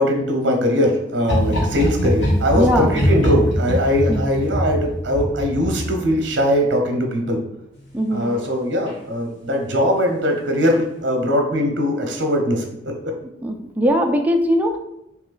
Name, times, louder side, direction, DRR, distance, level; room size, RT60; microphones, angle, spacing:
voice 1, 0.0-7.4 8.1-13.1, equal, 75° right, 2 dB, 0.7 m, -21 dB
sound 1, 1.2-6.4 8.2-8.5 8.9-9.0, equal, 85° left, 1.3 m, -22 dB
voice 2, 2.6-2.9 4.1-4.2 7.9-8.3 13.4-14.8, equal, 10° right, 3 dB, 0.4 m, -20 dB
3.2 x 3.0 x 3.8 m, 0.83 s
head